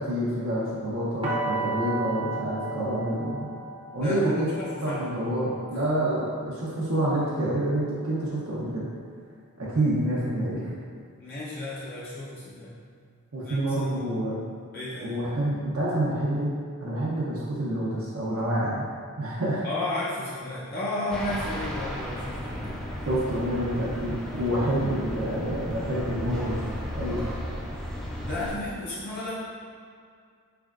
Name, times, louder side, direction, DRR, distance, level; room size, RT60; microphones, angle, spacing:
voice 1, 0.0-3.5 3.9-4.5 4.8-8.9 9.6-10.7 13.3-14.4 15.0-16.5 16.8-18.9 19.2-19.6 23.1-26.6 27.0-27.2, right 1 dB, 65° right, -7 dB, 0.7 m, -27 dB
sound 1, 1.2-7.1, right 3 dB, 25° right, 0.7 m, -34 dB
voice 2, 4.0-5.1 11.2-12.7 13.4-13.8 14.7-15.2 19.6-22.8 24.3-24.5 28.2-29.3, left 2 dB, 45° left, -8 dB, 0.6 m, -33 dB
sound 2, 21.1-28.5, equal, ahead, 0.3 m, -34 dB
4.3 x 3.4 x 2.4 m, 2.1 s
head